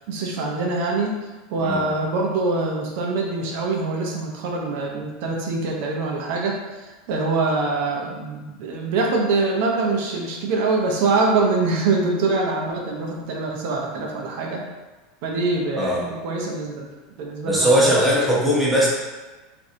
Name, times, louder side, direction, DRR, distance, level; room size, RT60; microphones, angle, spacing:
voice 1, 0.1-1.2 1.5-14.6 15.2-16.9 17.2-18.0, right 3 dB, 65° right, 0 dB, 0.6 m, -24 dB
voice 2, 15.7-16.1 17.4-18.9, equal, 5° right, -7 dB, 0.9 m, -19 dB
3.1 x 2.6 x 2.7 m, 1.2 s
supercardioid pair, 110°, 0 cm